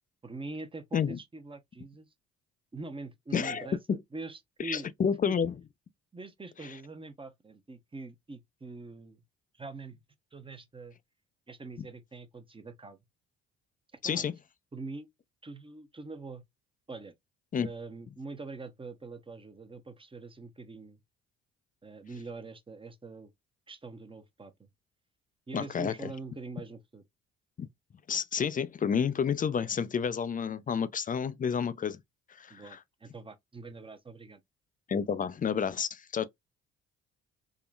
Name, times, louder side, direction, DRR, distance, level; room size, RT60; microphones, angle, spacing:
voice 1, 0.2-2.1 2.7-4.9 5.2-5.4 6.1-9.2 9.5-10.0 10.3-11.0 11.5-13.0 14.0-14.3 14.7-15.1 15.4-16.4 16.9-17.1 17.6-21.0 21.8-23.3 23.7-24.7 25.5-27.0 32.5-34.4, right 3 dB, 20° right, 0.8 m, -44 dB
voice 2, 3.3-4.0 4.6-5.5 14.0-14.3 17.5-17.7 25.5-26.1 27.6-27.7 28.1-32.0 32.3-32.8 34.9-36.3, left 7 dB, 30° left, 0.4 m, -30 dB
3.7 x 2.2 x 2.3 m
supercardioid pair, 60°, 29 cm